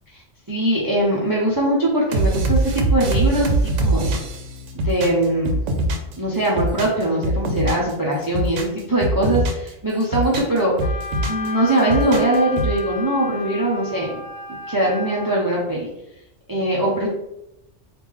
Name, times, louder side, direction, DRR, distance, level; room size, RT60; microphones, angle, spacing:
voice 1, 0.5-4.2 4.7-5.6 6.2-10.8 11.3-14.1 14.7-15.9 16.5-17.1, right 1 dB, 30° right, -4 dB, 0.4 m, -21 dB
sound 1, 2.1-6.2 6.4-7.9 8.2-9.7 10.0-11.5 11.8-12.8, right 1 dB, 80° right, 0.9 m, -22 dB
Wind instrument woodwind instrument, 10.8-15.4, left 3 dB, 60° left, 0.8 m, -33 dB
3.2 x 2.4 x 3.5 m, 0.86 s
omnidirectional pair, 1.2 m